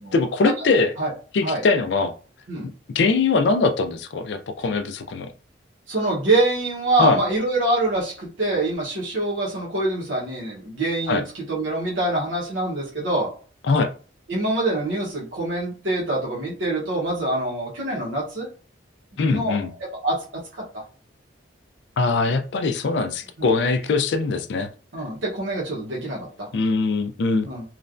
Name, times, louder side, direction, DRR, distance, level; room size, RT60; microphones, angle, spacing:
voice 1, 0.1-0.9 1.3-2.1 2.9-5.3 7.0-7.2 11.1-11.2 13.7-13.9 19.2-19.7 22.0-24.7 26.5-27.5, left 3 dB, 65° left, 10 dB, 0.4 m, -21 dB
voice 2, 5.9-13.3 14.3-18.5 19.3-19.6 20.0-20.2 20.7-20.8 23.4-23.5 24.9-26.5 27.4-27.6, right 2 dB, 75° right, -4 dB, 0.9 m, -25 dB
3.1 x 2.2 x 2.5 m, 0.39 s
head